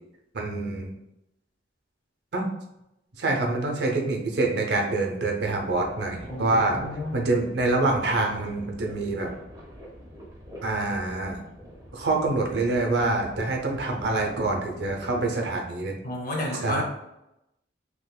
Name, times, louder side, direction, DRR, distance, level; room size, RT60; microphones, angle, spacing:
voice 1, 0.3-0.9 2.3-2.5 3.2-6.8 7.1-9.3 10.6-11.4 11.9-16.0 16.5-16.8, right 2 dB, 65° right, 1 dB, 0.7 m, -26 dB
sound 1, 5.4-15.3, equal, 20° right, 0.8 m, -45 dB
voice 2, 6.3-7.3 16.0-16.8, left 1 dB, 50° left, 0 dB, 0.8 m, -31 dB
3.8 x 2.9 x 2.3 m, 0.85 s
head